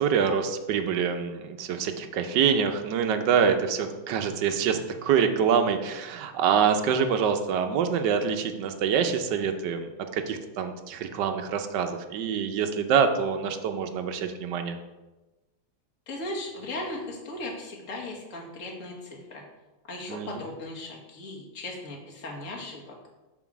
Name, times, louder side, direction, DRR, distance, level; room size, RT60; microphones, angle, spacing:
voice 1, 0.0-14.8 20.1-20.3, right 7 dB, 70° right, 6 dB, 1.1 m, -25 dB
voice 2, 16.1-19.4 19.9-22.9, left 2 dB, 40° left, -2 dB, 1.6 m, -37 dB
5.9 x 4.1 x 6.0 m, 1.1 s
omnidirectional pair, 2.3 m